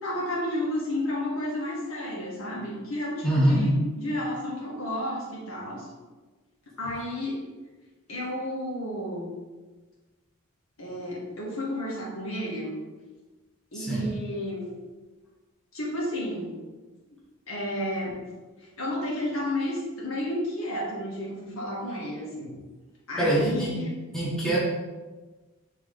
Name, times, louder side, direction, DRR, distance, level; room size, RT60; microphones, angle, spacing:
voice 1, 0.0-5.9 6.8-7.4 8.1-9.3 10.8-12.7 13.7-14.7 15.7-16.6 17.5-18.2 18.8-22.5 23.1-24.0, left 1 dB, 75° left, -4 dB, 2.0 m, -32 dB
voice 2, 3.2-3.7 13.7-14.1 23.2-23.7 24.1-24.6, right 1 dB, ahead, -7 dB, 1.3 m, -24 dB
7.3 x 3.6 x 3.8 m, 1.2 s
head